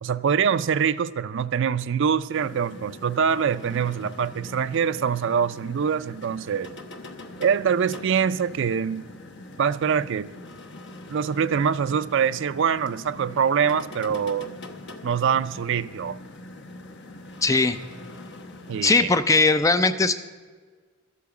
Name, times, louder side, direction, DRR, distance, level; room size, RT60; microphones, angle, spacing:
voice 1, 0.0-6.7 7.4-9.1 9.6-10.3 11.1-14.5 15.0-16.2 18.7-19.1, right 7 dB, 55° right, 0.4 m, -24 dB
sound 1, 2.3-18.9, left 2 dB, 55° left, 1.0 m, -43 dB
voice 2, 17.4-17.8 18.8-20.2, left 3 dB, 15° left, 0.4 m, -19 dB
12.5 x 8.4 x 7.1 m
head